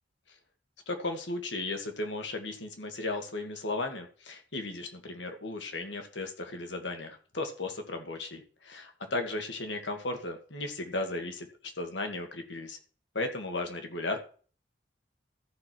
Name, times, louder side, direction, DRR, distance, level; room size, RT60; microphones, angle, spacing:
voice 1, 0.9-11.5 11.8-12.8 13.1-14.2, left 2 dB, 85° left, 5 dB, 2.0 m, -35 dB
13.5 x 4.7 x 6.2 m, 0.40 s
head